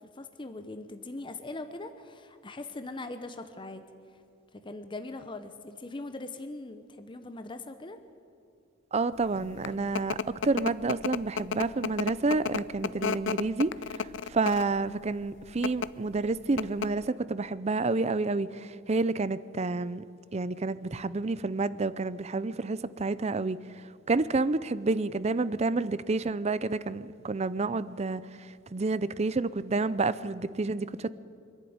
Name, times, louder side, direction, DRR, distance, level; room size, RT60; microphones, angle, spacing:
voice 1, 0.0-3.8 4.5-8.0, left 2 dB, 25° left, 0.8 m, -41 dB
voice 2, 8.9-10.2 10.4-20.0 20.3-23.6 24.1-28.2 28.7-31.1, right 3 dB, 35° right, 0.5 m, -29 dB
sound 1, 9.3-14.8 15.5-15.9 16.3-16.4 16.6-17.1, left 6 dB, 70° left, 0.5 m, -32 dB
24.5 x 11.5 x 9.4 m
head